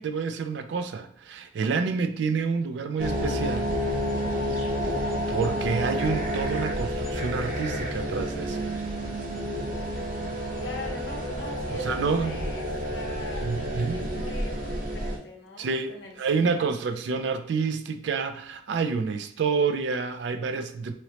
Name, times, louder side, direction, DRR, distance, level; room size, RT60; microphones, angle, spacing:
voice 1, 0.0-3.7 5.3-8.6 11.8-12.5 13.4-14.2 15.6-15.9 16.2-20.9, right 5 dB, 65° right, 8 dB, 0.3 m, -28 dB
sound 1, 3.0-15.2, equal, 45° right, 0.7 m, -30 dB
voice 2, 4.4-4.8 10.6-16.7, left 2 dB, 65° left, 2 dB, 0.7 m, -42 dB
3.0 x 2.9 x 2.8 m, 0.62 s
head